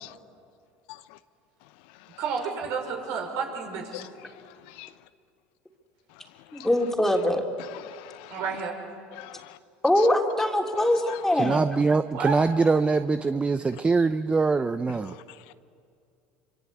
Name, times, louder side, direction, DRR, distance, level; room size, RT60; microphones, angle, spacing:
voice 1, 0.9-1.2 2.0-2.2 3.9-4.0 4.7-4.9 6.5-6.7 7.6-8.4 9.1-9.6 10.0-10.1 10.8-11.2 15.1-15.2, left 18 dB, 75° left, 0.9 m, -43 dB
voice 2, 2.2-3.8 8.3-8.8 12.1-12.4, right 5 dB, 65° right, 5.7 m, -30 dB
voice 3, 6.5-7.4 9.8-11.6, left 1 dB, 5° left, 3.3 m, -23 dB
voice 4, 11.3-15.1, right 4 dB, 20° right, 0.7 m, -23 dB
26.0 x 25.5 x 8.4 m
supercardioid pair, 90°, 6 cm